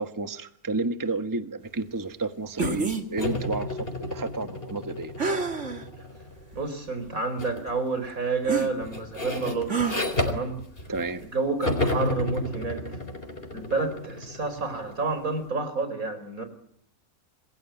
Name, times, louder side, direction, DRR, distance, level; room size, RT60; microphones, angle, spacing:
voice 1, 0.0-5.1 10.9-11.2, right 2 dB, 15° right, 9 dB, 1.3 m, -31 dB
sound 1, 2.6-3.0 5.2-5.8 6.5-6.6 8.4-8.7 9.7-10.0, right 5 dB, 55° right, 2.7 m, -27 dB
sound 2, 3.2-6.5 7.4-7.7 8.0-11.3 11.6-15.2, left 2 dB, 40° left, 4.6 m, -32 dB
voice 2, 6.5-9.9 10.2-10.6 11.3-12.8 13.5-16.4, right 3 dB, 70° right, 10 dB, 5.1 m, -29 dB
28.0 x 22.0 x 9.2 m, 0.67 s
omnidirectional pair, 1.5 m